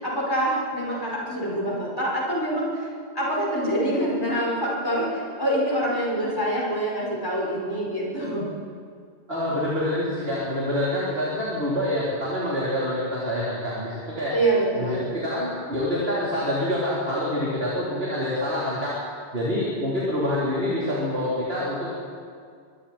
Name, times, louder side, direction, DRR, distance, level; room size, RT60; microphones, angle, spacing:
voice 1, 0.0-2.9 3.2-8.5 14.3-15.0, right 1 dB, 20° left, -4 dB, 5.1 m, -25 dB
voice 2, 9.3-14.3 14.8-18.9 19.3-21.9, left 1 dB, 60° right, -7 dB, 4.3 m, -26 dB
24.5 x 24.5 x 4.4 m, 2.1 s
omnidirectional pair, 1.2 m